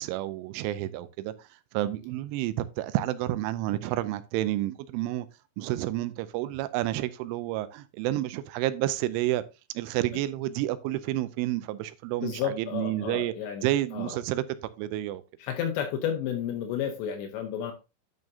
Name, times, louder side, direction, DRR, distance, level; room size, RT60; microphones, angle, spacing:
voice 1, 0.0-1.5 1.7-5.3 5.6-9.4 9.7-13.3 13.6-15.2, right 15 dB, 85° right, 2.9 m, -30 dB
voice 2, 12.2-13.7 13.9-14.2 15.4-17.7, left 9 dB, 75° left, 2.7 m, -31 dB
10.5 x 6.2 x 2.7 m
omnidirectional pair, 5.8 m